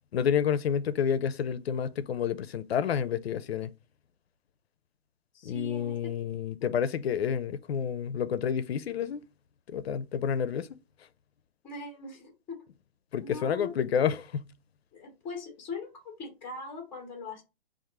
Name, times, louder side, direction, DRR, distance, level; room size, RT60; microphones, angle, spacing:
voice 1, 0.1-3.7 5.4-9.2 9.7-10.7 13.1-14.5, left 8 dB, 90° left, 0.5 m, -29 dB
voice 2, 5.3-6.1 11.6-12.6 13.2-13.8 14.9-17.4, left 3 dB, 5° left, 0.5 m, -41 dB
3.6 x 2.5 x 4.6 m
hypercardioid pair, 165°, 30 cm